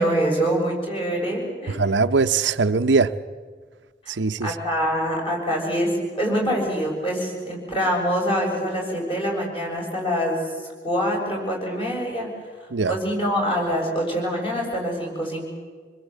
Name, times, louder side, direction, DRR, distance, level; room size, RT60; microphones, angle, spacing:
voice 1, 0.0-1.8 4.4-10.4 10.8-12.3 12.9-15.5, equal, 30° left, 6.9 m, -25 dB
voice 2, 1.7-3.1 4.1-4.5 12.7-12.9, right 4 dB, 80° right, 0.7 m, -21 dB
26.5 x 20.5 x 8.3 m
head